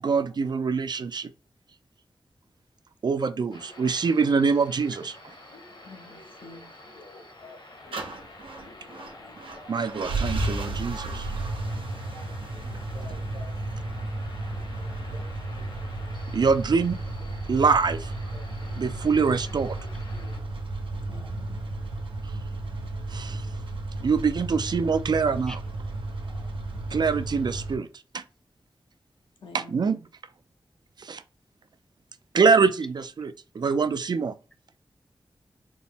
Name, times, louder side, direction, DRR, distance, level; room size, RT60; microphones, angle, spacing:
voice 1, 0.0-1.3 3.0-5.2 9.7-11.3 16.3-17.0 17.5-18.1 18.8-19.8 23.1-23.5 24.0-25.6 26.9-27.9 28.1-28.2 29.5-30.0 31.0-31.2 32.3-34.4, right 5 dB, 55° right, 0.4 m, -24 dB
sound 1, 3.5-20.4, left 2 dB, 60° left, 1.0 m, -47 dB
voice 2, 5.8-6.8 21.0-21.7 29.4-30.0, left 2 dB, 85° left, 0.8 m, -48 dB
voice 3, 7.7-8.1 9.1-9.5 17.4-17.5 20.2-20.5 21.1-21.3 25.5-25.6 26.2-26.5, left 1 dB, 5° left, 0.5 m, -50 dB
sound 2, 7.9-27.8, right 2 dB, 85° right, 0.7 m, -33 dB
4.1 x 2.0 x 3.4 m
wide cardioid pair, 90°, 9 cm